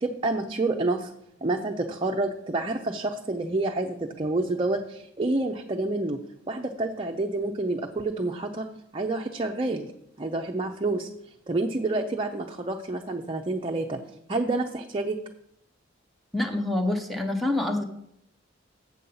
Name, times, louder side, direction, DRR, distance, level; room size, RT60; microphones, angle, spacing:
voice 1, 0.0-1.1 1.4-6.2 6.5-8.7 8.9-9.9 10.2-11.1 11.5-14.0 14.3-15.2, right 2 dB, 25° right, 2 dB, 0.5 m, -28 dB
voice 2, 16.3-17.8, left 2 dB, ahead, 4 dB, 0.8 m, -26 dB
7.6 x 7.2 x 5.5 m, 0.75 s
head